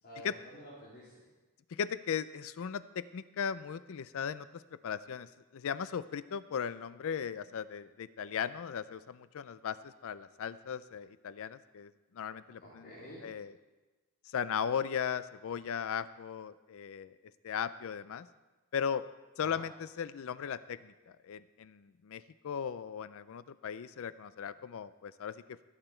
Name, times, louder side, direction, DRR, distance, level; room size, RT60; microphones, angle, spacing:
voice 1, 0.0-1.2 12.6-13.2 19.4-19.6, equal, 50° left, -9 dB, 3.8 m, -49 dB
voice 2, 1.7-5.3 5.5-12.9 13.2-13.5 14.3-17.1 17.4-18.3 18.7-19.0 19.4-20.9 21.2-25.6, left 7 dB, 65° left, 15 dB, 0.4 m, -37 dB
20.0 x 9.0 x 4.4 m, 1.2 s
head